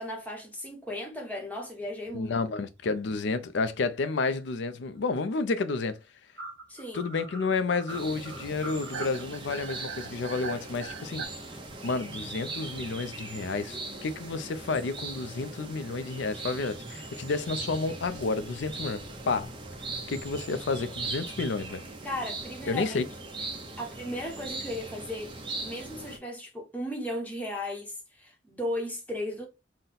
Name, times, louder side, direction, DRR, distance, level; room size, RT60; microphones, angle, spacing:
voice 1, 0.0-2.4 6.7-7.0 22.0-23.0 23.8-25.3 25.6-29.5, left 1 dB, 10° left, 1.0 m, -36 dB
voice 2, 2.1-6.0 6.9-11.2 11.8-19.5 20.1-21.8 22.7-23.1, left 3 dB, 65° left, 0.4 m, -30 dB
sound 1, 2.1-2.4 2.6-2.7 3.0-3.1 4.0-4.3 6.4-11.3, right 4 dB, 65° right, 1.2 m, -41 dB
sound 2, 7.9-26.2, right 3 dB, 25° right, 0.7 m, -40 dB
3.9 x 2.1 x 4.0 m
head